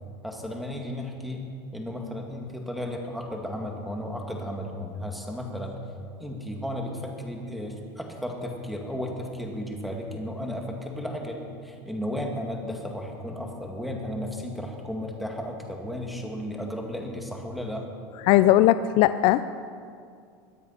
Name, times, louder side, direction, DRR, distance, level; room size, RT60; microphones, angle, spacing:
voice 1, 0.2-1.4 1.7-5.8 6.2-17.8, left 1 dB, ahead, 1 dB, 2.1 m, -34 dB
voice 2, 18.2-19.5, left 14 dB, 50° left, 13 dB, 0.4 m, -19 dB
22.0 x 8.9 x 5.8 m, 2.3 s
supercardioid pair, 135°, 12 cm